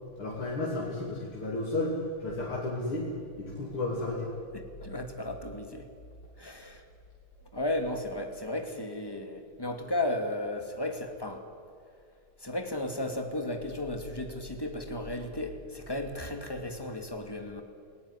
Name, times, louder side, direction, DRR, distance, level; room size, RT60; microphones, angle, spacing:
voice 1, 0.2-3.1 3.4-4.3, left 2 dB, 85° left, -3 dB, 4.0 m, -32 dB
voice 2, 4.5-5.9 6.4-6.8 7.5-11.4 12.4-17.6, left 1 dB, 10° left, 5 dB, 2.4 m, -34 dB
29.5 x 18.5 x 9.9 m, 2.2 s
omnidirectional pair, 2.3 m